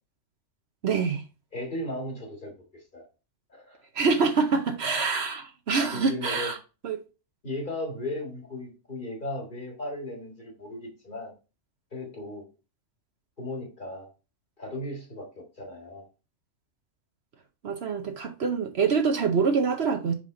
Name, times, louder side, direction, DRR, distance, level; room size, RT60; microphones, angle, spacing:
voice 1, 0.8-1.2 3.9-6.6 6.8-7.0 17.6-20.1, right 5 dB, 60° right, 1.0 m, -25 dB
voice 2, 1.5-3.1 3.5-3.8 5.9-6.5 7.4-11.3 11.9-12.4 13.4-14.1 14.6-16.1, left 1 dB, 40° left, 2.0 m, -36 dB
5.4 x 5.0 x 3.7 m
omnidirectional pair, 1.3 m